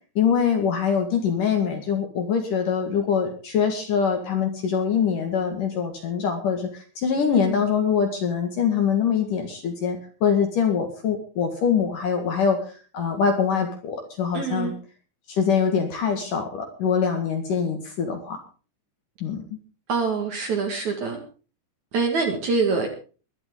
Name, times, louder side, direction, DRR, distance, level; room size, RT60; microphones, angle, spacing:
voice 1, 0.2-12.6 12.9-14.7 15.3-18.4 19.2-19.4, left 7 dB, 55° left, 4 dB, 2.9 m, -24 dB
voice 2, 14.3-14.7 19.9-21.2 21.9-22.9, right 4 dB, 50° right, 3 dB, 2.7 m, -25 dB
21.5 x 11.5 x 3.9 m, 0.37 s
omnidirectional pair, 5.3 m